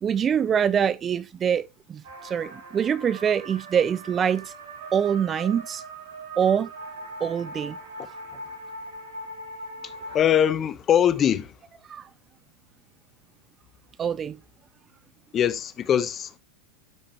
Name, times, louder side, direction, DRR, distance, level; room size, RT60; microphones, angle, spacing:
voice 1, 0.0-4.5 4.9-5.8 6.4-6.7 7.2-7.8 11.9-12.1 14.0-14.4, right 8 dB, 25° right, 0.4 m, -24 dB
sound 1, 2.0-10.2, right 2 dB, 80° right, 5.2 m, -40 dB
voice 2, 10.1-11.5 15.3-16.4, left 9 dB, 30° left, 1.0 m, -22 dB
12.0 x 5.1 x 2.9 m
hypercardioid pair, 115°, 0 cm